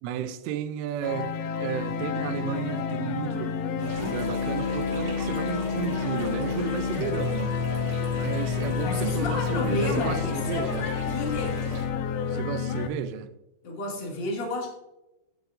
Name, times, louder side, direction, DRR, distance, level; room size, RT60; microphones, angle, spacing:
voice 1, 0.0-7.6 8.1-10.9 12.3-13.3, right 9 dB, 85° right, 3.1 m, -33 dB
sound 1, 1.0-12.9, left 6 dB, 85° left, 2.3 m, -29 dB
sound 2, 3.8-11.9, right 1 dB, 40° right, 2.9 m, -38 dB
voice 2, 8.8-11.6 13.6-14.7, left 1 dB, 40° left, 1.7 m, -31 dB
12.5 x 7.8 x 2.5 m
omnidirectional pair, 5.6 m